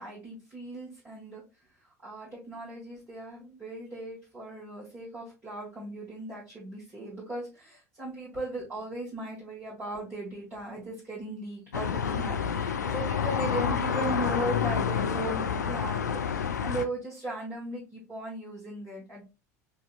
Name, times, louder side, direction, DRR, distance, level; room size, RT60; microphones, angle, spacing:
voice 1, 0.0-1.4 1.8-16.0 16.3-19.2, right 1 dB, 25° right, -7 dB, 1.8 m, -37 dB
sound 1, 11.7-16.9, left 7 dB, 80° left, 0.4 m, -29 dB
4.7 x 2.7 x 2.4 m, 0.28 s
figure-of-eight pair, 75°, 9 cm